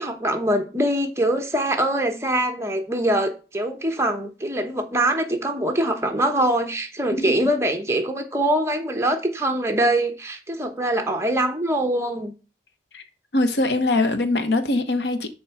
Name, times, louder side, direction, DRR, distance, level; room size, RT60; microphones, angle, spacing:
voice 1, 0.0-12.3, right 1 dB, 15° right, 1.0 m, -23 dB
voice 2, 13.3-15.3, left 2 dB, 75° left, 0.9 m, -22 dB
6.7 x 4.5 x 5.8 m
head